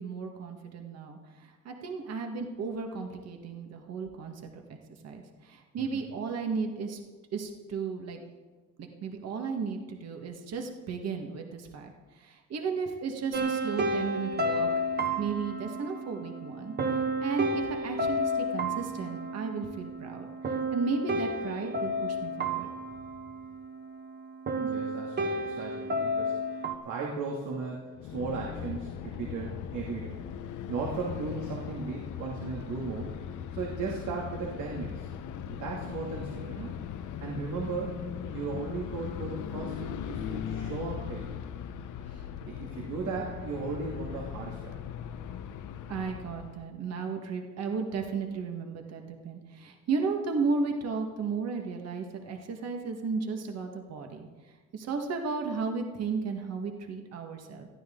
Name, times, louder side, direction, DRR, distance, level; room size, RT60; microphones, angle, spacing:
voice 1, 0.0-4.6 5.0-7.0 7.3-8.2 8.8-14.7 15.2-16.7 17.2-22.7 42.1-42.2 45.9-54.3 54.7-57.7, right 5 dB, 60° right, 3 dB, 1.8 m, -34 dB
voice 2, 5.8-6.2 24.6-30.2 30.7-33.1 33.5-35.1 35.4-36.7 37.2-37.9 38.3-41.3 42.5-44.7, right 4 dB, 80° right, -2 dB, 2.7 m, -36 dB
sound 1, 13.3-24.1 24.5-26.7, equal, 35° right, 1.4 m, -32 dB
sound 2, 28.0-46.7, left 9 dB, 85° left, 1.0 m, -39 dB
21.0 x 14.5 x 3.9 m, 1.3 s
cardioid pair, 160°, 30 cm